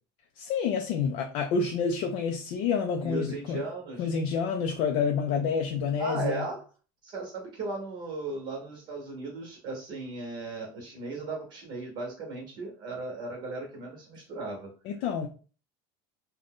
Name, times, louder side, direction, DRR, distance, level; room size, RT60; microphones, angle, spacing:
voice 1, 0.4-3.6 4.0-6.5 14.9-15.3, left 6 dB, 55° left, 0.4 m, -28 dB
voice 2, 3.0-4.1 6.0-6.6 7.0-14.7, right 2 dB, 40° right, 0.8 m, -36 dB
2.5 x 2.2 x 3.4 m
cardioid pair, 165°, 12 cm